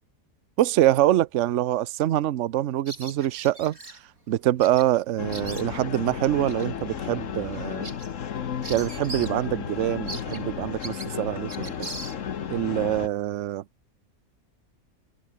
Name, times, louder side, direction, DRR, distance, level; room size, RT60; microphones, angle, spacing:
voice 1, 0.6-3.8 4.3-7.9 8.7-11.9 12.5-13.6, right 13 dB, 65° right, 1.0 m, -25 dB
Bird vocalization bird call bird song, 2.9-4.0 4.6-4.9 5.1-6.0 6.5-6.7 7.1-7.2 7.5-9.4 9.7-9.8 10.1-12.5, right 2 dB, 85° right, 7.9 m, -40 dB
sound 1, 5.2-13.1, left 8 dB, 65° left, 1.4 m, -33 dB
open air
omnidirectional pair, 1.5 m